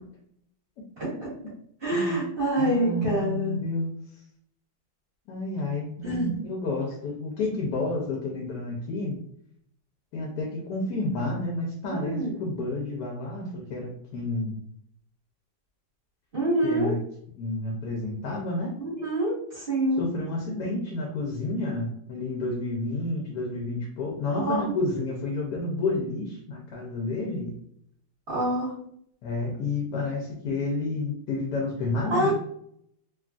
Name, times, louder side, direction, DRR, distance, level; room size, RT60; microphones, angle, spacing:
voice 1, 1.0-1.3 1.8-3.6 6.0-6.4 11.8-12.3 16.3-16.9 18.8-20.0 24.3-24.7 28.3-28.7 32.1-32.3, right 1 dB, 40° right, -8 dB, 1.4 m, -26 dB
voice 2, 2.6-3.9 5.3-9.2 10.1-14.5 16.6-17.0 17.4-18.8 20.0-27.5 29.2-32.3, left 2 dB, 85° left, -1 dB, 1.2 m, -30 dB
3.1 x 2.3 x 2.4 m, 0.69 s
omnidirectional pair, 1.7 m